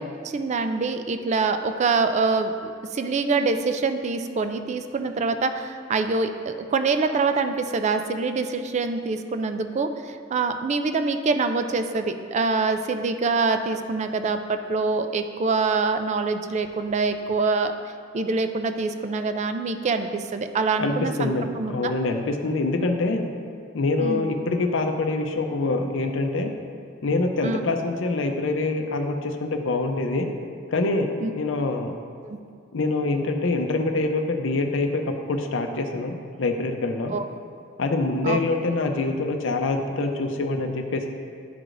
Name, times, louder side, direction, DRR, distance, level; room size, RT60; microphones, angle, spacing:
voice 1, 0.2-17.7 18.1-21.9 24.0-24.3 27.4-27.6 31.2-31.3 32.2-32.4 37.1-37.2 38.2-38.4, right 4 dB, 35° right, 8 dB, 0.3 m, -25 dB
voice 2, 20.8-23.3 23.7-26.5 27.0-30.3 30.7-31.1 31.3-31.9 32.7-37.1 37.8-41.1, left 2 dB, 70° left, 4 dB, 0.6 m, -25 dB
11.0 x 4.7 x 2.5 m, 2.3 s
head